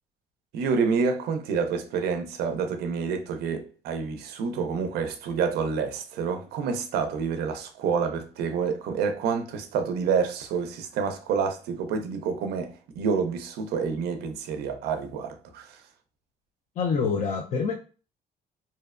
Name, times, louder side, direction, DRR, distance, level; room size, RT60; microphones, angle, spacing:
voice 1, 0.5-15.8, right 5 dB, 70° right, 0.4 m, -28 dB
voice 2, 16.8-17.7, left 5 dB, 45° left, 0.4 m, -26 dB
2.6 x 2.0 x 2.3 m
cardioid pair, 110°, 17 cm